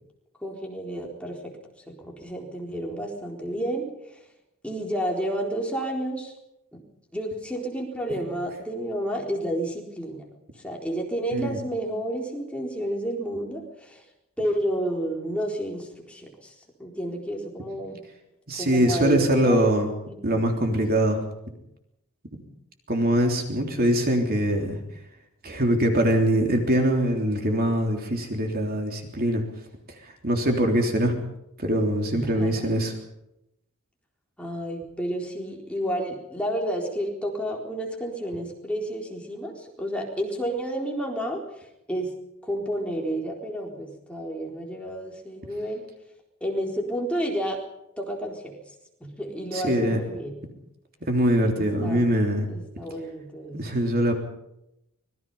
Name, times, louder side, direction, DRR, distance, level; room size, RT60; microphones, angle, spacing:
voice 1, 0.4-1.5 1.9-3.9 4.1-4.2 4.6-6.3 6.7-6.8 7.1-10.2 10.6-14.0 14.4-16.5 16.8-18.0 18.6-19.7 20.3-20.7 23.8-24.1 32.1-32.7 34.4-41.4 41.9-42.1 42.4-45.8 46.4-47.6 48.0-48.5 49.0-50.3 51.6-52.0 52.5-53.6, right 1 dB, 5° left, 0 dB, 4.2 m, -30 dB
voice 2, 18.5-19.9 20.2-21.2 22.9-24.8 25.4-29.4 30.2-31.2 31.6-32.9 49.5-50.0 51.1-52.5 53.5-54.1, right 1 dB, 45° right, 3 dB, 3.4 m, -23 dB
25.5 x 20.5 x 5.6 m, 0.83 s
head